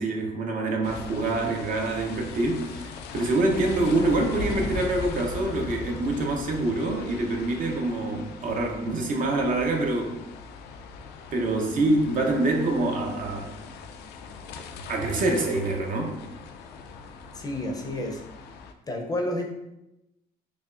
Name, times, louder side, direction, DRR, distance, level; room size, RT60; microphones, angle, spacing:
voice 1, 0.0-10.2 11.3-13.5 14.9-16.2, right 2 dB, 55° right, 2 dB, 0.7 m, -26 dB
sound 1, 0.8-18.7, left 4 dB, 75° left, 0.4 m, -39 dB
voice 2, 17.3-18.2 18.9-19.5, left 1 dB, 20° left, 1 dB, 0.5 m, -30 dB
4.9 x 2.3 x 2.4 m, 0.91 s
cardioid pair, 110°, 17 cm